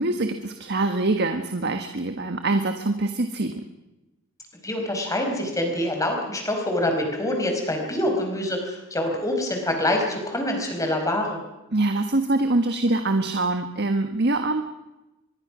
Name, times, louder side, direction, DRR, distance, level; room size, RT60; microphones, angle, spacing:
voice 1, 0.0-3.6 11.7-14.6, right 2 dB, 50° right, 6 dB, 1.5 m, -24 dB
voice 2, 4.6-11.4, left 1 dB, 15° left, 3 dB, 5.1 m, -25 dB
24.5 x 22.0 x 6.2 m, 0.99 s
head